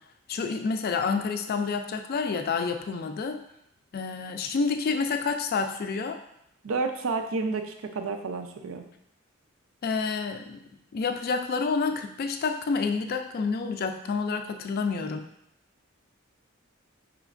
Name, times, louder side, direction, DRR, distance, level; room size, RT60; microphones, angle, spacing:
voice 1, 0.3-3.4 3.9-6.2 9.8-10.6 10.9-15.2, left 4 dB, 50° left, 7 dB, 0.3 m, -28 dB
voice 2, 6.6-8.8, right 4 dB, 75° right, 6 dB, 0.4 m, -30 dB
5.0 x 3.0 x 2.5 m, 0.76 s
head